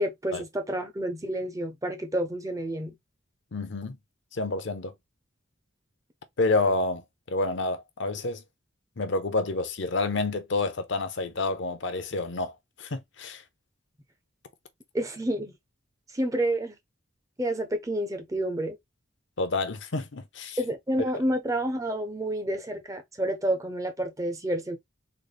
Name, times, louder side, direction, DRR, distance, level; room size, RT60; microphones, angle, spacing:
voice 1, 0.0-2.9 14.9-15.5 16.1-16.8 17.4-18.8 20.6-24.8, right 1 dB, 15° right, 0.5 m, -29 dB
voice 2, 3.5-4.0 4.3-4.9 6.4-8.4 9.0-12.5 12.8-13.4 19.4-20.6, left 3 dB, 60° left, 0.6 m, -29 dB
3.9 x 2.1 x 3.3 m
head